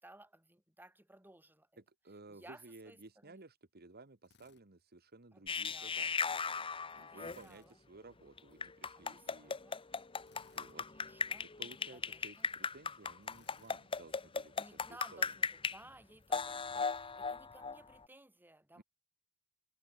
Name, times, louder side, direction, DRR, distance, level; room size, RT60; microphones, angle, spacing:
voice 1, 0.0-1.7 2.3-3.4 5.3-6.1 7.0-7.8 8.9-9.8 10.7-11.5 11.9-12.5 14.6-18.8, right 1 dB, 10° right, 4.5 m, -58 dB
voice 2, 1.8-6.3 6.9-9.6 10.3-10.9 11.4-15.3 18.7-18.8, right 2 dB, 45° right, 1.7 m, -56 dB
Drill, 4.2-4.6 7.2-7.7 10.2-10.8 13.2-13.8, left 4 dB, 50° left, 5.1 m, -66 dB
sound 1, 5.5-7.4 8.4-15.8 16.3-18.0, left 5 dB, 25° left, 0.9 m, -38 dB
head